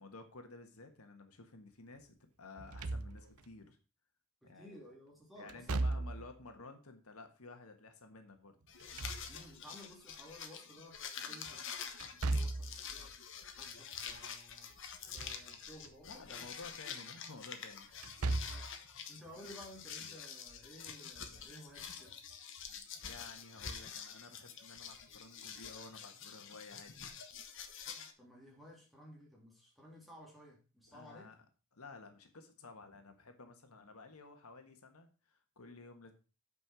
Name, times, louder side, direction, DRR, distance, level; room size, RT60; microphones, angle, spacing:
voice 1, 0.0-3.8 4.4-4.8 5.4-8.6 12.3-12.4 16.0-17.9 23.0-27.1 30.9-31.4 31.7-36.1, left 3 dB, 80° left, 6 dB, 1.5 m, -53 dB
Slam / Thump thud, 2.6-3.5 5.5-6.4 8.6-9.7 12.0-12.8 14.9-15.5 15.8-15.9 17.9-18.8, right 2 dB, 85° right, 0.7 m, -37 dB
voice 2, 4.4-6.1 9.3-11.6 12.1-13.2 13.6-14.7 15.1-16.5 18.5-22.1 28.2-31.3, equal, ahead, -2 dB, 3.0 m, -56 dB
sound 1, 8.7-28.1, left 7 dB, 55° left, 1.2 m, -47 dB
8.6 x 5.5 x 6.2 m, 0.34 s
head